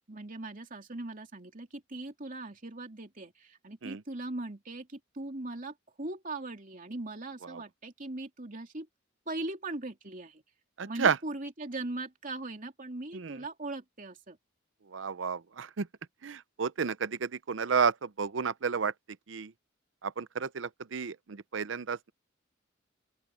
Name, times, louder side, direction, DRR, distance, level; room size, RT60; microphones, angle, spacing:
voice 1, 0.1-8.9 9.3-10.4 10.8-14.4, right 2 dB, 40° right, 3.0 m, -40 dB
voice 2, 10.8-11.2 13.1-13.4 14.9-15.9 16.2-18.9 19.3-19.5 20.0-22.1, right 6 dB, 65° right, 0.6 m, -31 dB
open air
head